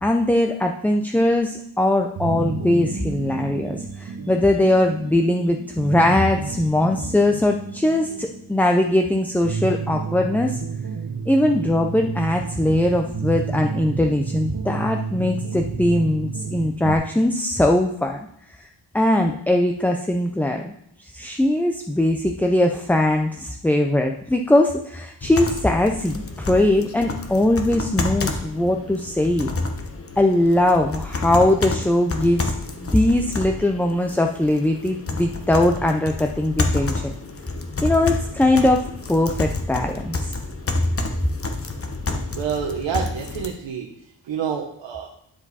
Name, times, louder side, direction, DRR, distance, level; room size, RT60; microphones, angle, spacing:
voice 1, 0.0-10.6 11.3-18.3 18.6-18.7 18.9-20.7 21.0-29.5 30.2-37.1 37.8-40.3, left 1 dB, 5° left, 3 dB, 0.3 m, -20 dB
sound 1, 2.2-16.9, right 6 dB, 40° right, 0.7 m, -31 dB
sound 2, 25.2-43.5, left 3 dB, 30° left, 0.9 m, -29 dB
voice 2, 42.3-43.9 44.2-45.1, right 7 dB, 85° right, 1 dB, 0.9 m, -27 dB
9.9 x 4.8 x 4.1 m, 0.74 s
wide cardioid pair, 130°, 44 cm